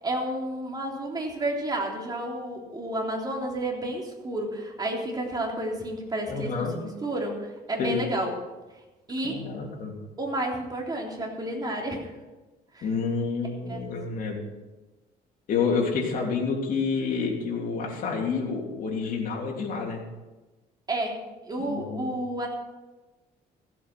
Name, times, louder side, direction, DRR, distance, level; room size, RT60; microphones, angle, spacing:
voice 1, 0.0-8.3 9.1-9.4 10.2-12.1 12.7-12.9 13.7-13.8 20.9-22.5, right 1 dB, 25° right, 0 dB, 3.4 m, -31 dB
voice 2, 6.3-6.8 7.8-8.0 9.2-9.9 12.8-14.4 15.5-20.0 21.7-22.1, left 5 dB, 55° left, -1 dB, 3.2 m, -28 dB
15.5 x 8.5 x 6.1 m, 1.1 s
cardioid pair, 110°, 17 cm